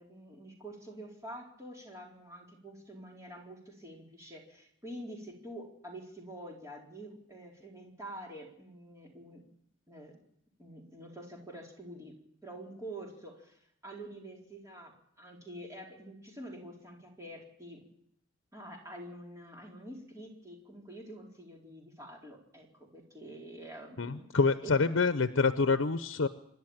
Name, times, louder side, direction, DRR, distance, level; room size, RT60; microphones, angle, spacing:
voice 1, 0.0-9.4 9.9-10.1 10.6-12.1 12.4-17.8 18.5-24.3 24.6-24.7, right 1 dB, 15° right, -1 dB, 4.3 m, -47 dB
voice 2, 24.0-26.3, left 4 dB, 90° left, 11 dB, 0.7 m, -27 dB
26.0 x 11.5 x 8.9 m, 0.72 s
head